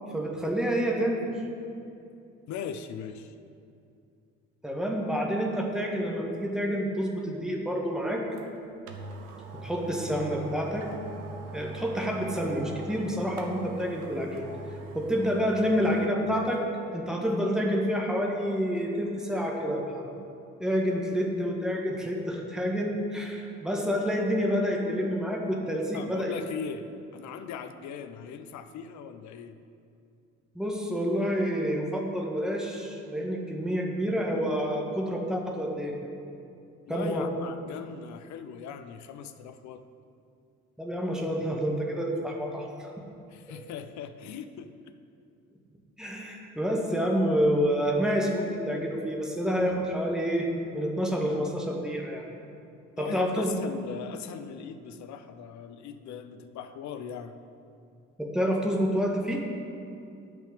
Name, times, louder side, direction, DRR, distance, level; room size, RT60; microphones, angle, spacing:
voice 1, 0.1-1.4 4.6-8.3 9.6-10.9 11.5-14.5 14.9-16.6 16.9-20.1 20.6-26.3 30.6-35.9 36.9-37.3 40.8-43.0 43.5-43.6 46.0-50.5 50.7-52.3 53.0-53.5 58.2-59.4, equal, ahead, 0 dB, 1.7 m, -28 dB
voice 2, 2.5-3.3 25.7-26.9 27.1-29.6 36.9-39.8 43.3-45.0 53.0-57.4, left 7 dB, 50° left, 10 dB, 0.7 m, -39 dB
sound 1, 8.4-8.5 8.9-16.1 16.5-16.6, right 3 dB, 75° right, 0.8 m, -42 dB
8.8 x 5.7 x 7.9 m, 2.5 s
figure-of-eight pair, 45°, 37 cm